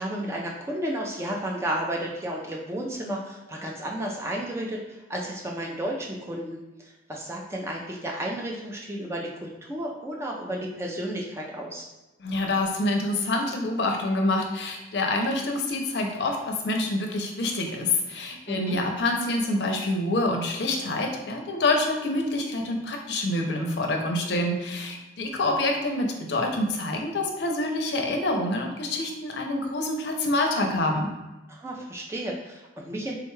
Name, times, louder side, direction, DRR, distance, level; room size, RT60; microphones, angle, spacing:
voice 1, 0.0-11.9 18.5-18.8 31.5-33.2, right 1 dB, 15° right, -1 dB, 0.4 m, -32 dB
voice 2, 12.2-31.1, left 2 dB, 70° left, 2 dB, 0.5 m, -26 dB
3.5 x 2.2 x 3.1 m, 1.0 s
head